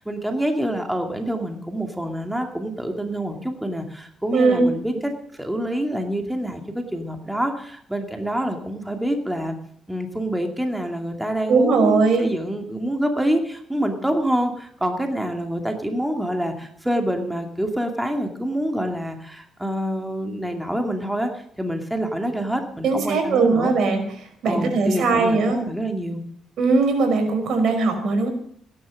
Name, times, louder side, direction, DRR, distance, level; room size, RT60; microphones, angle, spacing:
voice 1, 0.0-9.6 9.9-23.7 24.5-26.2, equal, 5° right, 3 dB, 2.4 m, -26 dB
voice 2, 4.3-4.6 11.5-12.2 22.8-24.0 24.4-25.6 26.6-28.3, right 4 dB, 65° right, 5 dB, 5.1 m, -19 dB
17.0 x 11.0 x 6.5 m, 0.63 s
cardioid pair, 90°, 0 cm